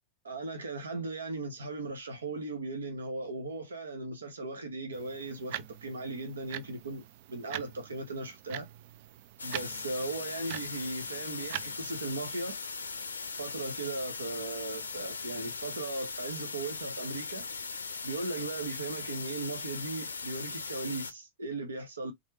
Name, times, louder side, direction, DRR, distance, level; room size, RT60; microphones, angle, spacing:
voice 1, 0.2-7.0 7.3-8.7 9.4-12.6 13.4-17.5 18.0-22.1, right 2 dB, 75° right, 1.0 m, -37 dB
sound 1, 4.9-12.1, right 13 dB, 50° right, 0.4 m, -44 dB
sound 2, 9.4-21.1, left 4 dB, 75° left, 0.5 m, -39 dB
3.7 x 3.1 x 3.3 m
figure-of-eight pair, 90°, 0 cm